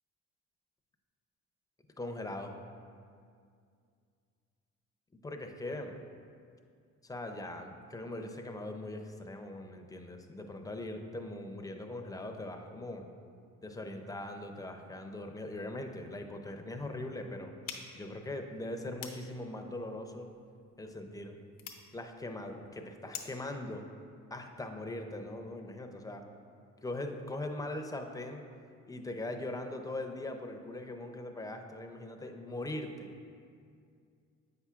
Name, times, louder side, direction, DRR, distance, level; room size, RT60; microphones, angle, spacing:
voice 1, 2.0-2.6 5.2-6.0 7.0-13.1 13.6-17.5 17.9-20.3 20.8-21.4 21.9-23.8 24.3-26.2 26.8-28.4 28.9-33.1, left 1 dB, 10° left, 4 dB, 0.4 m, -41 dB
sound 1, 17.6-23.5, left 7 dB, 90° left, 0.7 m, -49 dB
7.7 x 5.6 x 2.4 m, 2.3 s
cardioid pair, 90°, 30 cm